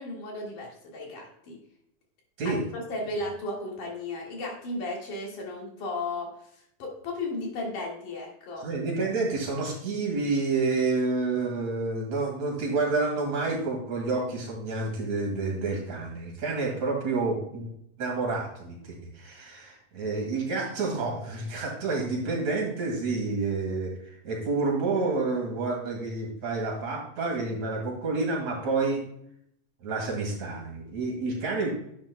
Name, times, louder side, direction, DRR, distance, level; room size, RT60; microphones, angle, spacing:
voice 1, 0.0-1.6 2.4-8.7, left 2 dB, 65° left, -1 dB, 3.2 m, -35 dB
voice 2, 8.6-17.7 18.0-29.0 29.8-31.7, right 3 dB, 55° right, -1 dB, 3.1 m, -29 dB
10.5 x 8.6 x 2.2 m, 0.73 s
omnidirectional pair, 4.1 m